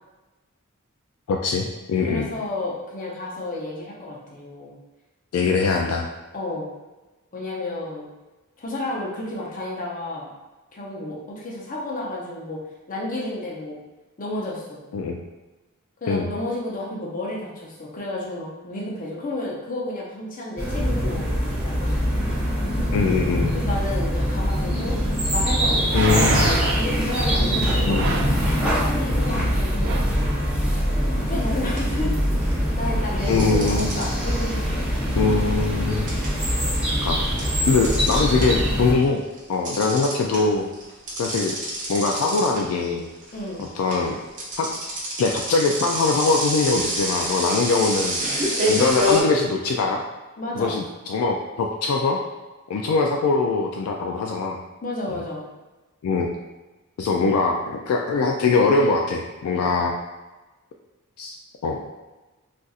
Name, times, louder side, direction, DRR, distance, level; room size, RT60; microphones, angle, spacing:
voice 1, 1.3-2.3 5.3-6.1 14.9-15.2 16.1-16.3 22.9-23.5 25.9-26.5 27.9-28.1 29.4-29.5 33.3-33.9 35.2-36.2 37.0-37.2 37.7-39.2 39.5-40.7 41.2-41.6 41.9-43.1 43.6-44.2 44.6-44.7 45.2-48.2 48.7-50.0 50.6-52.2 52.7-54.6 55.1-55.2 56.0-56.3 57.0-59.9 61.2-61.4 61.6-61.8, left 4 dB, 75° left, 2 dB, 0.3 m, -22 dB
voice 2, 2.0-4.7 6.3-6.7 7.3-8.1 8.6-10.3 10.7-12.6 12.9-13.8 14.2-14.8 16.0-21.3 21.6-22.0 23.5-25.0 25.3-28.1 28.6-30.0 30.6-32.3 32.8-35.1 43.3-43.7 50.4-50.8 54.8-55.4, left 1 dB, 40° left, -3 dB, 0.7 m, -31 dB
sound 1, 20.6-38.9, equal, 5° right, 0.7 m, -23 dB
sound 2, 24.8-24.9 25.9-26.9 27.9-28.4 29.4-29.5 29.8-30.2 30.7-30.8, right 3 dB, 55° right, 0.4 m, -26 dB
sound 3, 31.2-31.4 31.8-32.7 33.4-38.8 39.1-49.2, equal, 35° right, 0.8 m, -27 dB
4.0 x 2.5 x 2.4 m, 1.1 s
head